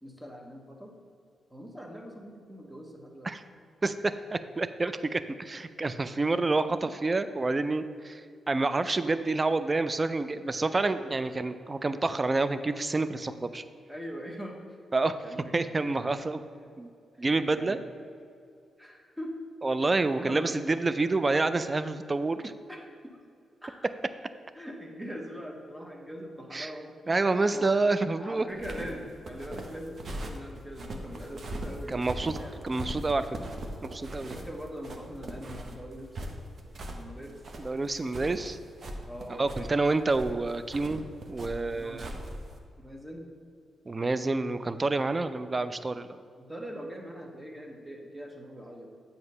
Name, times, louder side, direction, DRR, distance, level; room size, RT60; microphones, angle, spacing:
voice 1, 0.0-1.0 1.5-3.3 6.8-6.9 11.0-11.2 11.9-12.0 13.9-14.8 15.2-15.8 16.5-16.7 17.2-17.8 18.8-19.3 19.8-20.7 21.5-21.6 22.7-23.2 23.6-23.7 24.5-27.7 28.2-32.5 34.2-36.3 36.9-37.4 39.1-39.7 41.7-42.0 42.8-43.3 46.4-48.9, equal, 5° right, 0 dB, 1.1 m, -42 dB
voice 2, 3.8-8.2 8.5-13.6 14.9-15.2 15.5-16.4 16.8-16.9 17.2-17.8 19.6-22.5 26.5-26.7 27.1-28.5 31.9-32.4 32.6-33.3 33.9-34.4 37.6-38.6 39.4-42.1 43.9-46.2, right 3 dB, 35° right, 12 dB, 0.3 m, -28 dB
sound 1, 28.5-42.6, right 1 dB, 55° right, 0.8 m, -40 dB
7.8 x 2.9 x 5.4 m, 2.3 s
supercardioid pair, 55°, 0 cm